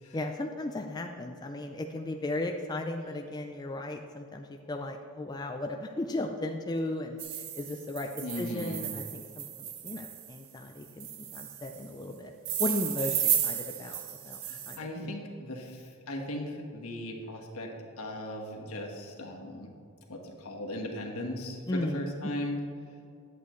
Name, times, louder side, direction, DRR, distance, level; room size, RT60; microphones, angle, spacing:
voice 1, 0.1-8.1 8.4-9.5 9.8-12.3 12.6-15.1 21.7-22.4, left 2 dB, 20° left, 3 dB, 0.4 m, -36 dB
sound 1, 7.2-10.3 11.0-11.8 12.4-14.8, right 10 dB, 65° right, 0.7 m, -33 dB
voice 2, 8.2-8.9 14.4-17.7 18.0-19.7 20.1-22.6, left 1 dB, 70° left, 0 dB, 1.4 m, -38 dB
11.0 x 8.2 x 3.1 m, 2.5 s
head